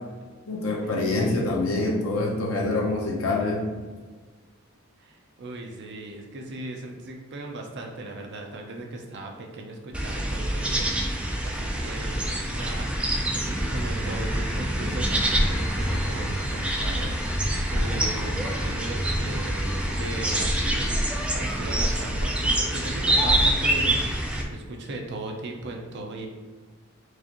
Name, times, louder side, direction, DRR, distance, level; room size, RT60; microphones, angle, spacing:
voice 1, 0.5-3.6, left 2 dB, 80° left, -3 dB, 0.8 m, -25 dB
voice 2, 5.0-13.0 13.3-20.9 21.3-24.1 24.5-26.3, right 2 dB, 55° right, 2 dB, 0.6 m, -37 dB
sound 1, 9.9-24.4, right 1 dB, 5° right, 0.4 m, -26 dB
sound 2, 15.0-21.3, left 4 dB, 55° left, 1.2 m, -45 dB
4.7 x 2.5 x 2.9 m, 1.4 s
head